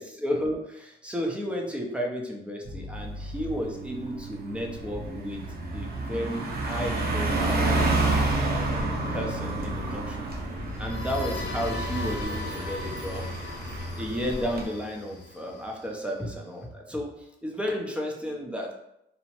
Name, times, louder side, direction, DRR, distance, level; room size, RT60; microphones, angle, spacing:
voice 1, 0.0-5.4 5.7-7.7 8.4-8.8 9.1-10.3 10.8-13.3 14.0-18.7, equal, 5° right, 0 dB, 0.5 m, -33 dB
Bass guitar, 2.6-12.2, right 1 dB, 70° right, 1.0 m, -38 dB
Car passing by, 3.1-3.3 3.7-14.6, right 2 dB, 50° right, 0.7 m, -30 dB
sound 1, 10.5-16.3, left 2 dB, 65° left, 0.6 m, -37 dB
2.8 x 2.0 x 3.0 m, 0.81 s
cardioid pair, 90°, 20 cm